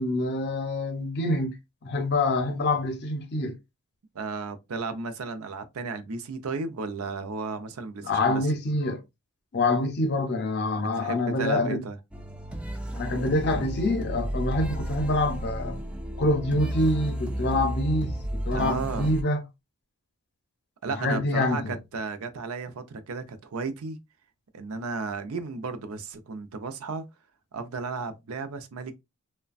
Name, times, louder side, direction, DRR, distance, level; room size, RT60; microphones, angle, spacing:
voice 1, 0.0-1.5 1.8-3.6 8.0-9.0 9.5-11.8 13.0-15.8 16.2-19.4 21.0-21.7, left 2 dB, 50° left, 0.6 m, -26 dB
voice 2, 4.1-8.4 10.8-12.0 18.5-19.1 20.8-24.0 24.5-27.0 27.5-28.9, right 4 dB, 75° right, 0.5 m, -34 dB
sound 1, 12.1-19.2, equal, 5° right, 0.3 m, -32 dB
3.1 x 2.1 x 2.4 m
head